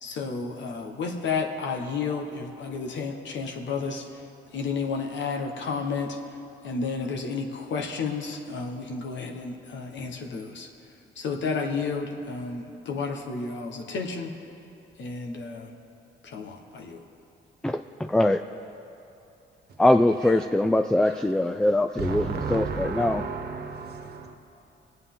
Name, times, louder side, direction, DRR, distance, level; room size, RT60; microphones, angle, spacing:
voice 1, 0.0-4.0 4.5-6.2 6.6-10.7 11.2-14.3 15.0-15.7 16.2-17.0, left 4 dB, 65° left, 2 dB, 1.4 m, -31 dB
voice 2, 17.6-18.4 19.8-23.2, left 1 dB, 5° left, 8 dB, 0.3 m, -22 dB
voice 3, 22.0-24.3, right 4 dB, 55° right, 4 dB, 1.4 m, -32 dB
21.0 x 8.2 x 3.8 m, 3.0 s
cardioid pair, 90°, 20 cm